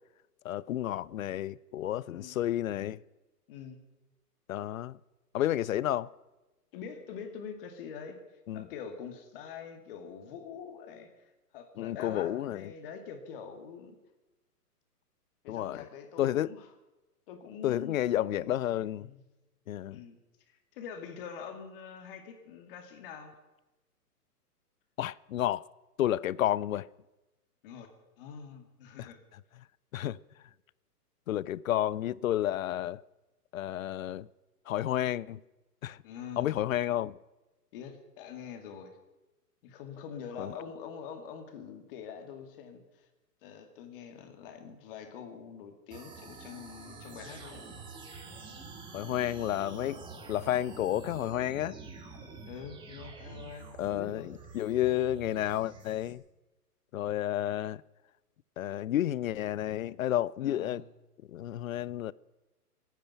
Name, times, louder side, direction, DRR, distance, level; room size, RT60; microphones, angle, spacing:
voice 1, 0.4-3.0 4.5-5.0 5.3-6.1 8.5-8.7 11.8-12.7 15.5-15.9 16.2-16.5 17.6-19.1 19.7-20.0 25.0-25.6 26.0-26.9 29.0-29.1 29.9-30.2 31.3-33.0 33.5-34.3 34.7-35.4 35.8-36.0 36.4-37.2 40.4-40.5 48.9-50.0 50.3-51.7 53.8-56.2 56.9-57.8 58.6-60.8 61.3-62.1, left 12 dB, 60° left, 0.5 m, -31 dB
voice 2, 3.5-3.8 6.7-8.2 8.5-11.1 11.5-14.0 15.4-16.7 17.3-19.2 19.9-20.2 20.7-23.3 27.6-29.2 36.0-36.6 37.7-39.0 39.6-43.1 43.4-47.7 52.4-54.3 60.4-60.9, left 7 dB, 35° left, 2.2 m, -45 dB
sound 1, 45.9-56.1, right 4 dB, 10° right, 1.4 m, -47 dB
25.0 x 9.2 x 5.7 m
hypercardioid pair, 150°, 47 cm